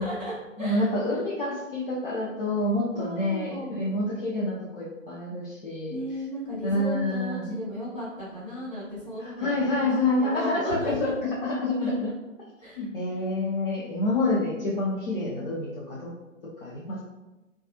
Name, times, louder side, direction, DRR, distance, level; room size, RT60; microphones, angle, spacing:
voice 1, 0.0-0.8 2.9-3.8 5.9-9.9 10.2-11.1 11.8-11.9 12.6-13.2, equal, ahead, -31 dB, 0.4 m, -36 dB
voice 2, 0.6-6.0 6.6-7.5 9.2-12.1 12.8-16.1 16.6-17.0, left 2 dB, 45° left, -8 dB, 0.6 m, -28 dB
3.2 x 2.3 x 2.6 m, 1.1 s
figure-of-eight pair, 130°, 39 cm